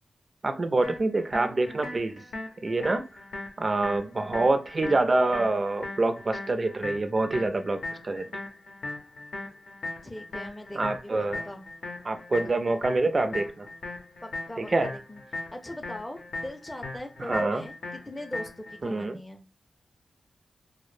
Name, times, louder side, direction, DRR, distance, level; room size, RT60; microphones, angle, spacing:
voice 1, 0.4-2.2 2.6-3.0 3.6-8.3 10.7-11.4 12.0-13.7 14.7-14.9 17.2-17.6 18.8-19.2, right 2 dB, 45° right, 0.4 m, -26 dB
sound 1, 0.8-18.8, left 2 dB, 85° left, 0.6 m, -39 dB
voice 2, 10.0-11.1 11.4-11.7 14.2-15.2 15.5-19.4, left 1 dB, 15° left, 0.4 m, -41 dB
2.0 x 2.0 x 3.1 m
cardioid pair, 50°, 0 cm